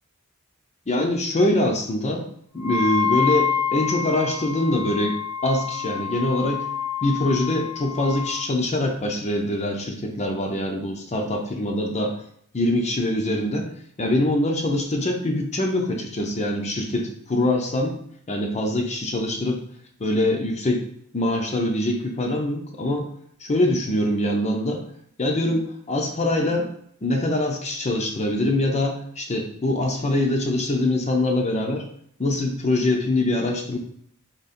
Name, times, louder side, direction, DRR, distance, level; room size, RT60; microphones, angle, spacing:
voice 1, 0.9-2.2 2.5-6.7 7.0-12.2 12.5-13.7 14.0-18.0 18.3-19.6 20.0-20.8 21.1-23.1 23.4-24.8 25.2-26.7 27.0-31.8 32.2-33.8, left 1 dB, 30° left, 2 dB, 0.6 m, -24 dB
Wind instrument woodwind instrument, 2.6-8.5, left 7 dB, 75° left, 0.7 m, -27 dB
3.7 x 2.9 x 4.2 m, 0.66 s
head